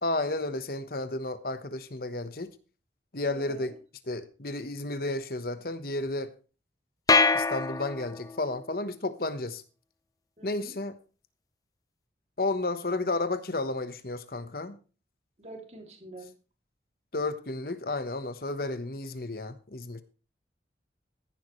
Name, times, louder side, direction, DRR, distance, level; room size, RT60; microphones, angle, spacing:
voice 1, 0.0-2.5 3.1-3.8 4.1-6.3 7.3-9.6 10.4-10.9 12.4-14.8 17.1-20.0, left 2 dB, 55° left, 1.1 m, -32 dB
voice 2, 3.2-3.7 10.4-10.7 15.4-16.3, right 2 dB, 35° right, 2.7 m, -46 dB
sound 1, 7.1-8.4, left 4 dB, 20° left, 0.6 m, -24 dB
14.5 x 11.0 x 3.2 m
head